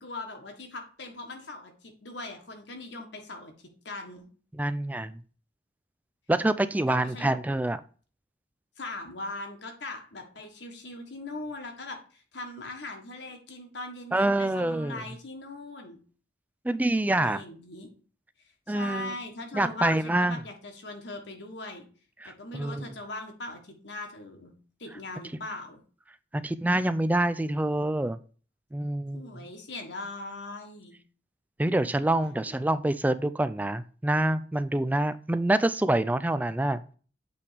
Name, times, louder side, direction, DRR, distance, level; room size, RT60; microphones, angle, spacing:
voice 1, 0.0-4.3 6.9-7.3 8.8-16.0 17.1-17.9 18.7-21.9 22.2-24.5 24.8-25.8 29.1-31.0, left 2 dB, 65° left, 3 dB, 1.5 m, -40 dB
voice 2, 4.5-5.2 6.3-7.8 14.1-15.0 16.6-17.4 18.7-19.1 19.5-20.4 22.2-22.9 26.3-28.2 28.7-29.4 31.6-36.8, right 1 dB, 10° right, 13 dB, 0.3 m, -26 dB
8.3 x 3.5 x 5.0 m, 0.40 s
head